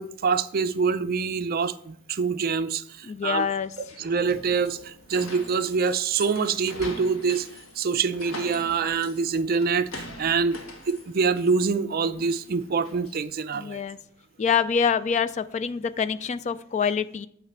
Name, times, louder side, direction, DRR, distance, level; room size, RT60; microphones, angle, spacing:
voice 1, 0.0-3.4 4.0-7.5 7.8-10.6 10.9-13.8, right 5 dB, 45° right, 0.5 m, -25 dB
voice 2, 3.0-3.7 13.5-14.0 14.4-17.3, left 6 dB, 35° left, 0.3 m, -25 dB
sound 1, 3.4-13.8, left 2 dB, 85° left, 1.3 m, -44 dB
9.0 x 3.2 x 6.5 m
head